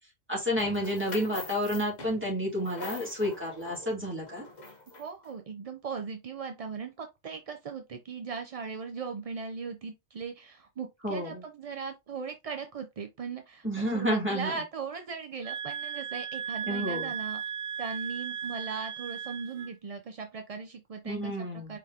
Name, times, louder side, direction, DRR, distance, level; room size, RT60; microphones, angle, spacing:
voice 1, 0.3-4.4 11.0-11.4 13.6-14.5 16.7-17.1 21.0-21.8, equal, 10° right, 2.6 m, -30 dB
sound 1, 0.6-5.3, left 2 dB, 40° left, 1.1 m, -45 dB
voice 2, 5.0-17.4 17.8-21.3 21.7-21.8, right 5 dB, 50° right, 0.4 m, -38 dB
sound 2, 15.4-19.7, right 7 dB, 75° right, 0.9 m, -36 dB
4.9 x 3.8 x 2.8 m
omnidirectional pair, 1.2 m